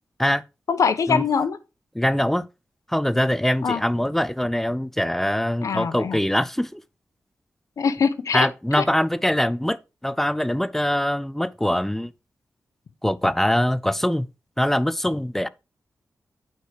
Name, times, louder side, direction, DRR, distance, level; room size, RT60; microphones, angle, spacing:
voice 1, 0.7-1.6 3.6-3.8 5.6-6.2 7.8-8.5 8.7-8.8, left 6 dB, 85° left, 0.9 m, -23 dB
voice 2, 2.0-2.5 2.9-6.8 8.3-9.8 10.0-12.1 13.0-14.3 14.6-15.5, equal, 5° left, 0.4 m, -23 dB
9.1 x 4.8 x 4.8 m
wide cardioid pair, 100°, 5 cm